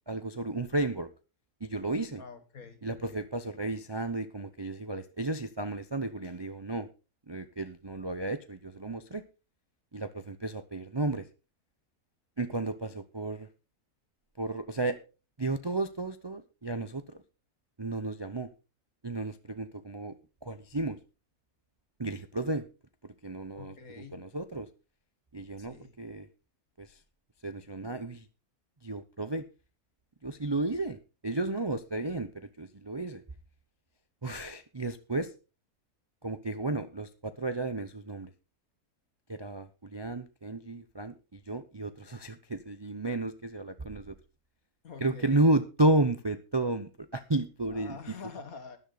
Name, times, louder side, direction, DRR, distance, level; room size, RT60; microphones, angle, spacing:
voice 1, 0.1-1.1 1.6-2.2 2.8-6.9 7.3-9.2 9.9-11.3 12.4-13.5 14.4-15.0 15.4-17.2 17.8-18.5 19.0-20.1 20.4-21.0 22.0-22.6 23.0-24.7 25.3-26.3 26.8-27.0 27.4-28.3 28.8-29.5 30.2-33.2 34.2-35.3 36.2-38.3 39.3-44.2 45.0-48.0, right 2 dB, 25° right, 10 dB, 0.5 m, -32 dB
voice 2, 2.2-3.3 23.5-24.2 25.6-25.9 44.8-45.4 47.7-48.8, left 5 dB, 65° left, 9 dB, 2.1 m, -47 dB
13.0 x 11.0 x 4.0 m, 0.32 s
omnidirectional pair, 1.6 m